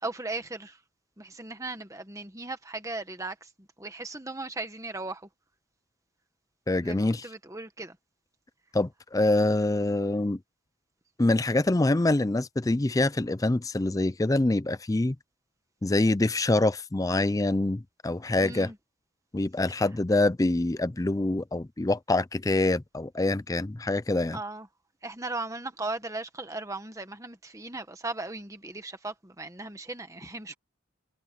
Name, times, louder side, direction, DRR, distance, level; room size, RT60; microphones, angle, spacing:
voice 1, 0.0-0.8 1.2-5.3 6.8-8.0 18.4-18.7 24.3-24.7 25.0-30.5, right 2 dB, 15° right, 1.5 m, -37 dB
voice 2, 6.7-7.2 8.7-10.4 11.2-15.2 15.8-18.7 19.3-24.4, left 2 dB, 15° left, 0.4 m, -25 dB
head